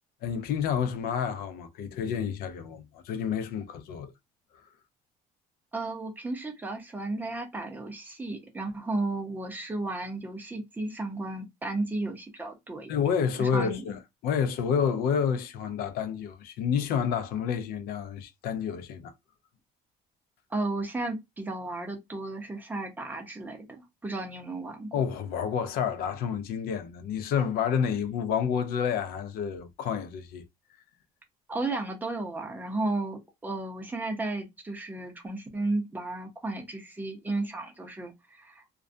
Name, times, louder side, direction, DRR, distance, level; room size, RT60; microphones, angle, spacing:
voice 1, 0.2-4.1 12.9-19.1 24.9-30.4, left 7 dB, 70° left, 0.5 m, -29 dB
voice 2, 5.7-12.9 13.4-13.8 20.5-24.9 31.5-38.6, right 2 dB, 10° right, 0.6 m, -34 dB
2.4 x 2.1 x 2.5 m
cardioid pair, 155°, 16 cm